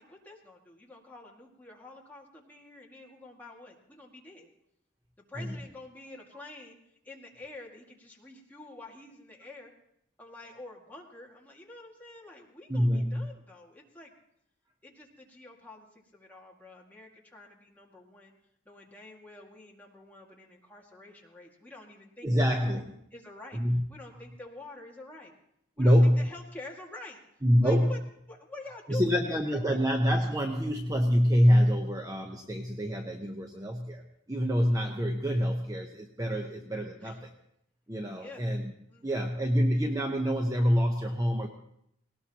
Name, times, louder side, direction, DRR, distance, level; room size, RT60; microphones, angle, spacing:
voice 1, 0.0-4.5 5.3-6.8 7.0-9.7 10.2-14.1 14.8-18.3 18.7-23.6 23.9-25.3 25.8-27.2 27.6-28.0 28.3-29.8 37.0-37.2 38.2-38.4 38.9-39.2, left 2 dB, 10° left, -2 dB, 2.0 m, -48 dB
voice 2, 12.7-13.3 16.3-16.4 22.2-22.8 23.5-23.8 25.8-26.3 27.4-27.9 28.9-34.0 34.3-37.2 37.9-38.7 39.0-41.5, equal, 15° right, 2 dB, 0.8 m, -26 dB
18.5 x 18.5 x 2.9 m, 0.74 s
head